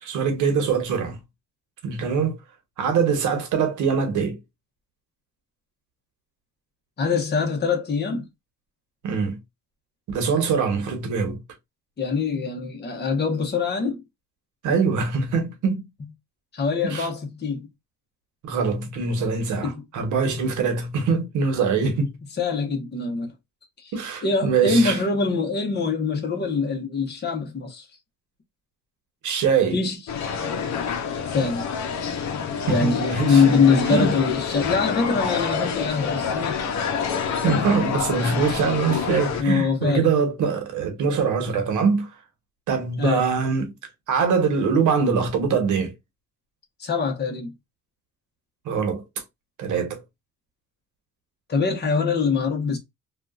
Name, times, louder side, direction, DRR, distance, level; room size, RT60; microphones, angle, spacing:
voice 1, 0.0-1.2 1.8-2.4 2.8-4.4 9.0-9.4 10.1-11.4 14.6-15.8 16.9-17.1 18.4-22.1 23.9-25.0 29.2-29.8 32.7-33.6 33.9-34.1 37.4-42.1 42.7-43.7 44.1-45.9 48.6-49.0 49.6-50.0, right 5 dB, 80° right, 1.0 m, -23 dB
voice 2, 7.0-8.3 12.0-14.0 16.5-17.7 19.6-19.8 20.2-20.4 22.4-23.3 23.8-23.9 24.2-27.9 29.7-30.0 31.3-31.7 32.7-36.6 37.4-37.7 39.4-40.1 43.0-43.2 46.8-47.5 51.5-52.8, left 5 dB, 35° left, 1.0 m, -23 dB
sound 1, 30.1-39.4, left 6 dB, 65° left, 0.7 m, -27 dB
2.8 x 2.4 x 2.4 m
cardioid pair, 90°, 30 cm